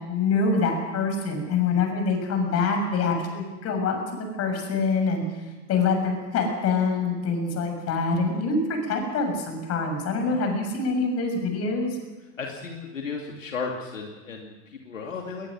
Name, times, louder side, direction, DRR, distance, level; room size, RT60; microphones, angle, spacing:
voice 1, 0.1-5.2 5.7-12.0, left 4 dB, 40° left, 4 dB, 6.8 m, -25 dB
voice 2, 12.4-15.5, left 4 dB, 85° left, 1 dB, 2.7 m, -35 dB
20.5 x 20.5 x 6.4 m, 1.2 s
hypercardioid pair, 85°, 38 cm